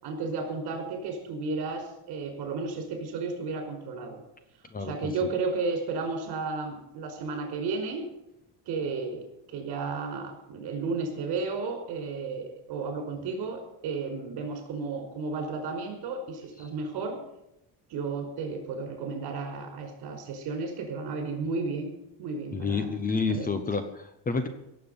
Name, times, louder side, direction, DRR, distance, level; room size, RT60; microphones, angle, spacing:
voice 1, 0.0-4.2 4.8-8.1 8.6-17.2 17.9-21.9 22.2-22.9 23.3-23.5, right 4 dB, 55° right, 4 dB, 5.1 m, -33 dB
voice 2, 4.7-5.1 22.5-24.5, left 4 dB, 20° left, 9 dB, 1.0 m, -29 dB
17.0 x 7.6 x 9.1 m, 0.85 s
cardioid pair, 160°, 44 cm